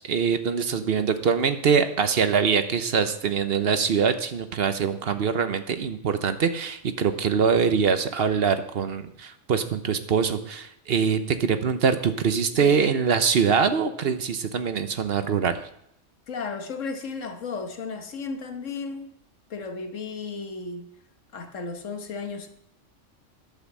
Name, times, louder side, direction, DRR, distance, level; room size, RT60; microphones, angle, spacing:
voice 1, 0.0-15.6, right 6 dB, 55° right, 0.9 m, -23 dB
voice 2, 16.3-19.1 19.5-20.9 21.3-22.5, left 4 dB, 80° left, 1.5 m, -34 dB
11.5 x 5.8 x 7.3 m
omnidirectional pair, 1.3 m